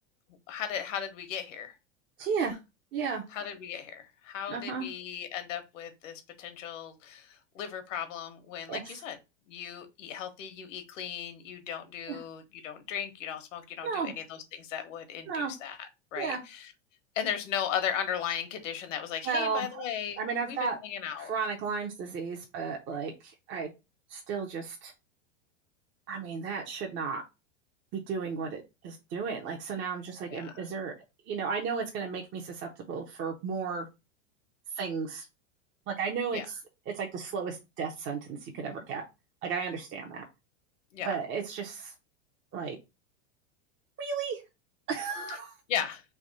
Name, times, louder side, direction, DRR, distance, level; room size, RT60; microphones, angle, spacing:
voice 1, 0.5-1.7 3.3-9.2 9.5-16.7 17.1-20.6 20.8-21.3 30.3-30.6 36.3-36.5 40.9-41.2 45.7-46.0, left 9 dB, 75° left, 1.3 m, -36 dB
voice 2, 2.2-2.6 2.9-3.2 4.5-4.9 8.7-8.9 12.1-12.2 13.8-14.1 15.3-15.5 16.2-16.4 19.2-19.8 20.2-20.8 21.1-23.7 24.1-24.9 26.1-27.2 27.9-30.9 31.3-33.9 34.7-35.2 35.9-36.6 36.9-39.0 39.4-40.2 41.0-41.9 42.5-42.8 44.0-44.4 44.9-45.5, right 5 dB, 30° right, 0.8 m, -34 dB
3.5 x 2.9 x 4.0 m
supercardioid pair, 130°, 37 cm